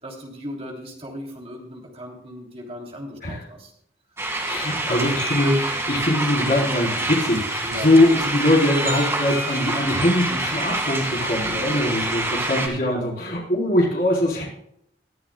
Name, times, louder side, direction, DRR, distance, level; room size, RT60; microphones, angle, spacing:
voice 1, 0.0-3.7 7.6-7.9 11.4-11.7 12.9-13.0, equal, 30° right, 0 dB, 3.2 m, -37 dB
sound 1, 4.2-12.7, right 2 dB, 15° right, 2.0 m, -26 dB
voice 2, 4.4-14.4, left 1 dB, 50° left, -3 dB, 4.0 m, -22 dB
20.5 x 11.0 x 2.3 m, 0.74 s
head